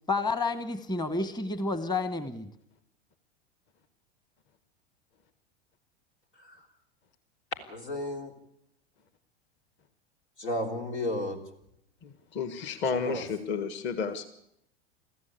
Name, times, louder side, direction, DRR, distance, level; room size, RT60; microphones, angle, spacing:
voice 1, 0.1-2.5, left 3 dB, 10° left, 12 dB, 1.2 m, -30 dB
voice 2, 7.7-8.3 10.4-11.4 12.9-13.2, left 1 dB, 80° left, 3 dB, 3.5 m, -33 dB
voice 3, 12.0-14.3, left 5 dB, 35° left, 11 dB, 1.6 m, -32 dB
23.5 x 14.5 x 8.3 m, 0.79 s
figure-of-eight pair, 90°, 33 cm